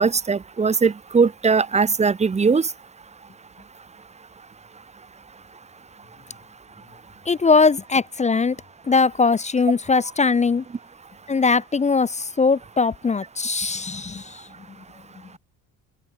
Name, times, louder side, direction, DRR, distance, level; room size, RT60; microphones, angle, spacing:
voice 1, 0.0-2.7, right 5 dB, 20° right, 0.6 m, -20 dB
voice 2, 7.3-8.6 8.9-10.6 11.3-14.4, left 4 dB, 20° left, 0.5 m, -20 dB
cardioid pair, 90°, 35 cm